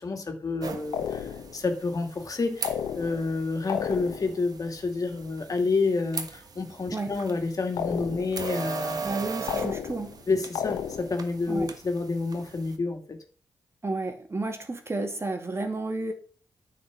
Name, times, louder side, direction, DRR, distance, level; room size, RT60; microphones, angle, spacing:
voice 1, 0.0-9.0 10.3-13.2, left 3 dB, 50° left, 2.4 m, -29 dB
sound 1, 0.6-12.8, right 5 dB, 55° right, 1.4 m, -39 dB
sound 2, 0.9-1.6 2.6-3.4 3.7-4.4 7.8-8.5 9.5-10.2 10.6-11.3, left 8 dB, 85° left, 1.0 m, -32 dB
voice 2, 9.0-10.2 11.5-11.7 13.8-16.1, right 2 dB, 35° right, 2.4 m, -31 dB
9.6 x 5.0 x 7.2 m
supercardioid pair, 45°, 8 cm